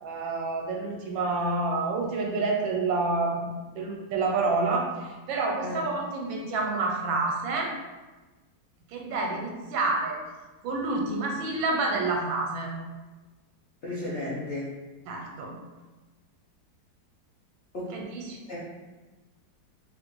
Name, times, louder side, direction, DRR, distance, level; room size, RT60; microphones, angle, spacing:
voice 1, 0.0-7.7 8.9-10.2 10.6-12.7 15.1-15.5 17.9-18.4, right 3 dB, 90° right, 1 dB, 1.4 m, -28 dB
voice 2, 13.8-14.8 17.7-18.0 18.5-18.6, left 1 dB, 70° left, -8 dB, 0.6 m, -34 dB
3.5 x 2.5 x 2.9 m, 1.2 s
omnidirectional pair, 2.0 m